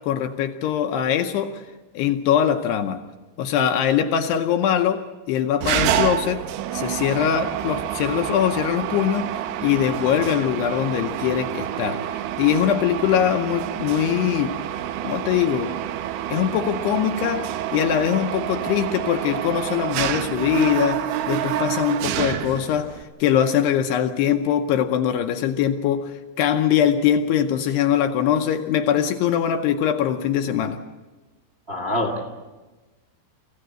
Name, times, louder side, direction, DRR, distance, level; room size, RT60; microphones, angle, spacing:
voice 1, 0.0-1.6 1.9-3.0 3.4-6.4 6.7-14.6 15.0-15.7 16.3-30.8, left 9 dB, 75° left, 6 dB, 2.6 m, -22 dB
Mechanisms, 5.6-23.0, right 11 dB, 75° right, 2.4 m, -28 dB
voice 2, 31.7-32.2, left 1 dB, 40° right, 2 dB, 0.8 m, -25 dB
25.5 x 15.0 x 7.8 m, 1.2 s
omnidirectional pair, 5.3 m